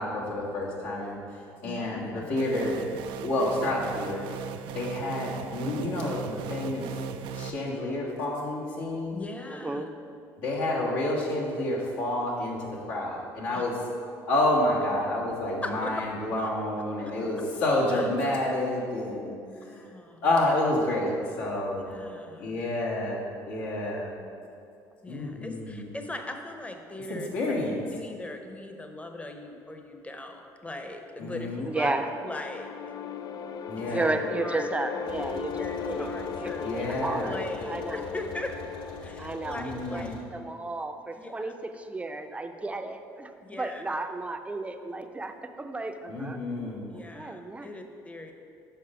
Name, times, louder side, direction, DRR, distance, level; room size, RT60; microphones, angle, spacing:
voice 1, 0.0-2.8 3.2-4.2 4.7-6.9 7.3-9.2 10.4-13.8 14.3-19.8 20.2-22.0 22.4-24.1 25.1-25.9 27.1-27.8 31.2-31.7 33.7-34.1 36.6-37.4 39.5-40.2 46.1-46.9, left 1 dB, 80° left, -4 dB, 1.7 m, -29 dB
voice 2, 1.6-2.3 9.1-9.8 13.5-13.6 15.6-15.9 16.4-16.5 17.0-17.1 17.9-18.1 19.6-20.2 21.9-22.5 25.0-27.5 27.9-31.9 32.2-32.7 33.8-33.9 34.4-34.7 35.6-36.6 37.2-38.5 39.0-40.1 41.1-41.5 43.4-43.8 46.9-48.3, left 2 dB, 15° left, 5 dB, 0.8 m, -40 dB
sound 1, 2.4-7.5, right 7 dB, 70° right, 0.4 m, -37 dB
voice 3, 9.5-9.9 31.6-32.1 33.8-38.1 39.2-40.0 40.3-43.3 43.6-46.4 46.9-47.7, right 2 dB, 15° right, 7 dB, 0.5 m, -33 dB
sound 2, 31.4-40.5, left 6 dB, 50° left, 0.4 m, -37 dB
sound 3, 35.0-40.2, left 4 dB, 65° left, 1.0 m, -46 dB
6.7 x 5.4 x 4.9 m, 2.5 s
supercardioid pair, 75°, 9 cm